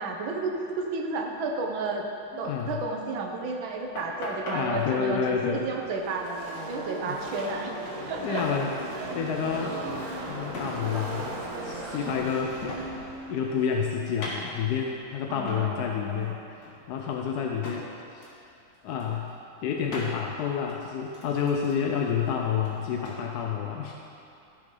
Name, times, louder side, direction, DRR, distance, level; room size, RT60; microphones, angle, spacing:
voice 1, 0.0-2.1 2.4-6.3 6.7-7.8 8.1-8.4 9.0-9.2 15.3-16.4, right 3 dB, 75° right, 1 dB, 1.7 m, -32 dB
voice 2, 2.3-2.8 4.5-5.7 7.0-7.2 8.2-8.7 9.1-9.8 10.2-11.4 11.6-18.3 18.8-19.3 19.6-23.9, left 7 dB, 70° left, 1 dB, 0.9 m, -29 dB
sound 1, 4.0-4.6 6.7-6.8 7.0-7.1 7.4-8.1 8.4-8.6 8.8-11.1 11.4-13.1 13.4-14.9 15.5-15.7 16.1-16.3 16.6-17.8 18.2-18.4 18.7-19.3 19.9-20.1 20.7-23.2, left 1 dB, 50° left, 2.0 m, -42 dB
Car passing by / Race car auto racing, 5.1-15.2, right 2 dB, 50° right, 1.4 m, -38 dB
14.0 x 6.7 x 3.8 m, 2.7 s
omnidirectional pair, 2.2 m